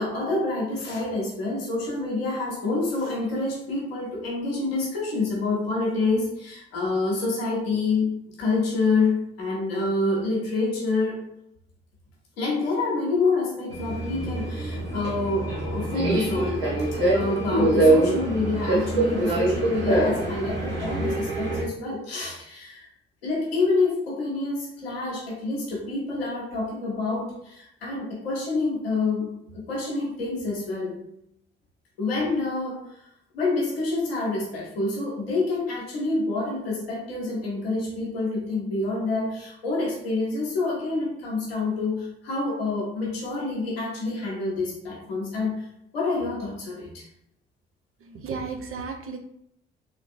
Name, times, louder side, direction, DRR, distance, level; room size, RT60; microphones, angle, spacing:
voice 1, 0.0-8.1 8.4-11.2 12.4-16.9 17.1-22.9 23.2-29.3 29.5-31.0 32.0-33.0 33.3-45.7 45.9-47.1, left 3 dB, 85° left, -4 dB, 1.1 m, -27 dB
Subway metro underground, 13.7-21.6, right 2 dB, 75° right, 1.2 m, -24 dB
voice 2, 48.0-49.2, right 5 dB, 45° right, 5 dB, 0.7 m, -34 dB
3.6 x 3.3 x 2.6 m, 0.74 s
figure-of-eight pair, 40°, 30 cm